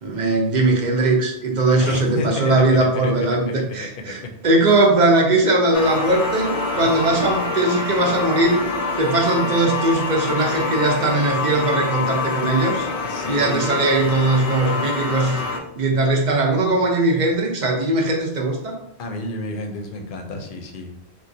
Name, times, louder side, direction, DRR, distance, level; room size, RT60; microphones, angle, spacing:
voice 1, 0.0-8.6 9.0-12.9 13.3-15.4 15.8-18.8, right 2 dB, 50° right, 0 dB, 0.7 m, -19 dB
voice 2, 1.7-3.1 3.8-4.3 6.8-7.3 13.0-13.6 19.0-21.0, left 2 dB, 60° left, 4 dB, 0.7 m, -31 dB
sound 1, 5.7-15.6, left 4 dB, 90° left, 0.8 m, -26 dB
3.7 x 2.4 x 2.6 m, 0.79 s
omnidirectional pair, 1.1 m